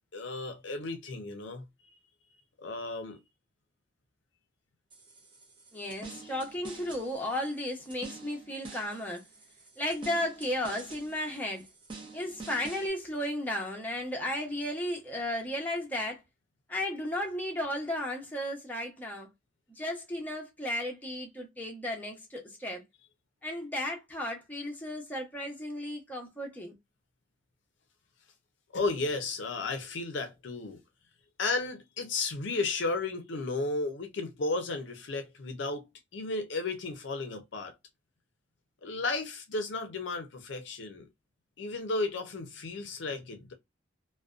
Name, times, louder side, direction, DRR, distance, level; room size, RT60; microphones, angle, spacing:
voice 1, 0.1-1.6 2.6-3.2 28.7-30.8 31.4-37.7 38.8-41.1 41.6-43.5, left 3 dB, 65° left, 0.5 m, -34 dB
sound 1, 4.9-12.9, right 3 dB, 25° right, 0.6 m, -48 dB
voice 2, 5.7-9.2 9.8-11.7 12.1-16.2 16.7-19.3 19.8-22.8 23.4-26.8, left 1 dB, 10° left, 0.7 m, -34 dB
2.4 x 2.1 x 2.3 m
head